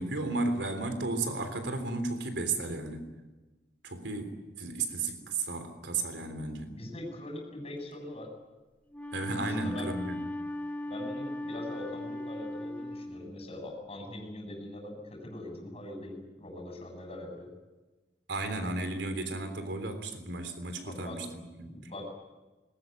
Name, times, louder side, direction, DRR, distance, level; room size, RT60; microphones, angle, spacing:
voice 1, 0.0-3.1 3.8-6.7 9.1-10.2 18.3-21.7, right 3 dB, 90° right, 7 dB, 3.5 m, -34 dB
voice 2, 6.6-8.3 9.4-9.9 10.9-17.5 20.9-21.2 21.6-22.1, left 1 dB, 35° left, 2 dB, 7.9 m, -42 dB
Wind instrument woodwind instrument, 8.9-13.7, left 1 dB, 10° left, 2.5 m, -38 dB
21.0 x 20.5 x 9.6 m, 1.1 s
head